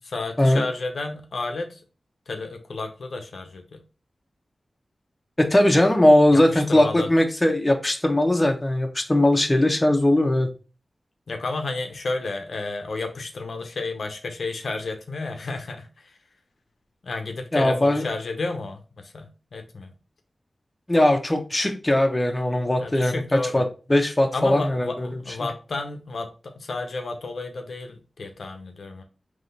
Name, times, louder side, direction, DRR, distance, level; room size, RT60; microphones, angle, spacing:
voice 1, 0.0-1.8 2.3-3.8 6.3-7.1 11.3-16.2 17.0-19.9 22.8-23.6 24.3-29.0, left 3 dB, 80° left, 5 dB, 0.7 m, -32 dB
voice 2, 5.4-10.5 17.5-18.0 20.9-23.6 23.9-25.1, left 1 dB, 25° left, 4 dB, 0.9 m, -19 dB
3.7 x 3.1 x 4.1 m, 0.34 s
cardioid pair, 50°, 0 cm